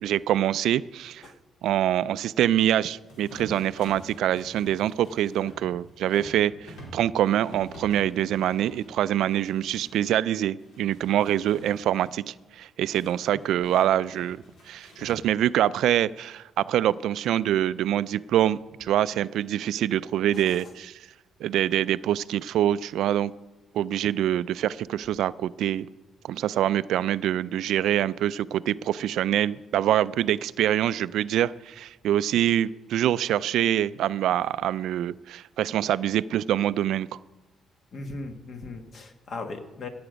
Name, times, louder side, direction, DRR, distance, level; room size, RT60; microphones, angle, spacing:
voice 1, 0.0-1.2 1.6-14.4 14.7-21.0 21.4-23.3 23.7-25.9 26.2-37.1, right 11 dB, 80° right, 17 dB, 0.3 m, -25 dB
sound 1, 3.1-10.2 10.6-12.2 12.9-15.5, equal, 85° left, 4.3 m, -48 dB
voice 2, 20.3-20.7 37.9-39.9, left 3 dB, 55° left, 6 dB, 1.6 m, -38 dB
16.0 x 7.8 x 5.1 m, 1.1 s
cardioid pair, 90°, 0 cm